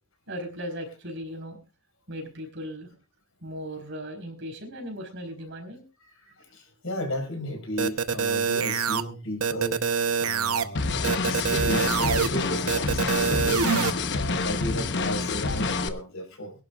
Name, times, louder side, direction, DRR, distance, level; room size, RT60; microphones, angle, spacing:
voice 1, 0.3-1.6 2.1-2.9 3.4-5.8, equal, 60° right, 4 dB, 4.4 m, -37 dB
voice 2, 6.0-9.9 10.2-13.7 14.1-16.5, left 1 dB, 70° left, 3 dB, 5.3 m, -34 dB
sound 1, 7.8-9.0 9.4-10.6 11.0-12.3 12.7-13.9, right 6 dB, 90° right, 0.8 m, -25 dB
sound 2, 10.8-15.9, left 3 dB, 55° left, 1.0 m, -27 dB
22.5 x 11.5 x 2.4 m, 0.32 s
head